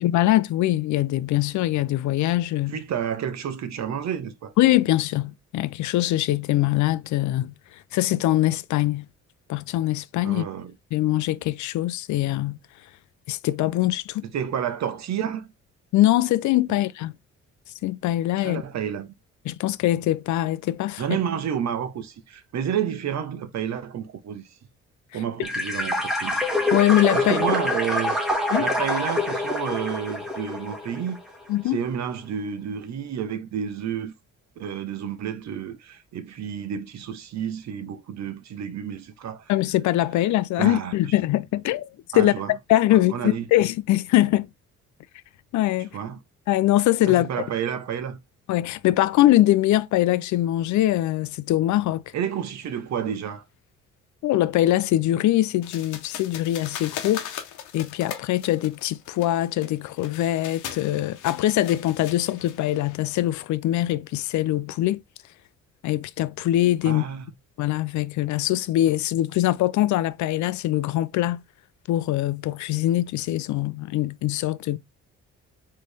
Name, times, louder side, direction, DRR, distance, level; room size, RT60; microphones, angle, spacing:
voice 1, 0.0-2.8 4.6-7.5 7.9-9.1 9.5-10.4 10.9-12.6 13.3-14.2 15.9-17.1 17.8-18.6 19.5-21.0 26.7-27.4 28.5-28.7 31.5-31.8 39.5-41.9 42.1-44.5 45.5-45.9 46.5-47.3 48.5-52.0 54.2-57.3 57.7-65.0 65.8-67.0 67.6-71.4 71.9-74.8, left 14 dB, 70° left, 0.5 m, -22 dB
voice 2, 2.7-4.5 10.2-10.7 14.2-15.5 18.4-19.1 21.0-24.6 25.1-26.4 27.1-28.2 28.6-31.2 31.7-34.1 34.6-39.5 40.6-40.9 42.1-42.5 42.9-43.5 45.9-46.2 47.1-48.2 52.1-53.4 66.8-67.3, right 8 dB, 65° right, 1.0 m, -30 dB
sound 1, 25.4-31.2, left 1 dB, ahead, 1.7 m, -26 dB
sound 2, 55.6-63.0, left 9 dB, 90° left, 0.9 m, -39 dB
4.2 x 3.2 x 3.4 m
cardioid pair, 90°, 30 cm